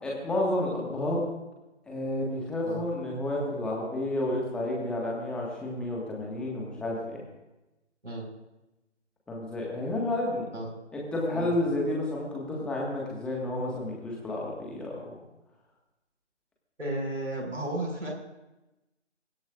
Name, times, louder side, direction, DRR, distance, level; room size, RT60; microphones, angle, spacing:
voice 1, 0.0-1.2 1.9-7.2 9.3-10.5 10.9-15.1, left 1 dB, 5° left, -3 dB, 1.6 m, -31 dB
voice 2, 16.8-18.1, right 1 dB, 80° right, 0 dB, 5.7 m, -33 dB
24.0 x 16.0 x 2.5 m, 1.0 s
figure-of-eight pair, 145°, 36 cm